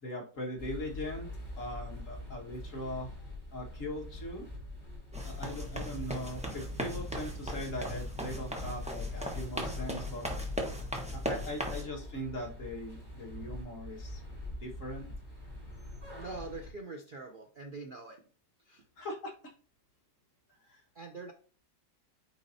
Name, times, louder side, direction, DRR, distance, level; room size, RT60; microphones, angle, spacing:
voice 1, 0.0-1.3 1.6-3.1 3.5-4.5 5.2-10.3 11.1-14.2 14.6-15.1 19.0-19.3 20.7-20.8, equal, 45° left, -1 dB, 1.9 m, -40 dB
sound 1, 0.6-16.7, left 1 dB, 10° left, 3.2 m, -44 dB
sound 2, 5.1-11.8, left 1 dB, 5° right, 1.0 m, -38 dB
voice 2, 16.1-18.2 18.6-18.9 20.9-21.3, right 3 dB, 80° right, 4 dB, 0.4 m, -44 dB
9.3 x 4.2 x 2.7 m, 0.41 s
omnidirectional pair, 1.9 m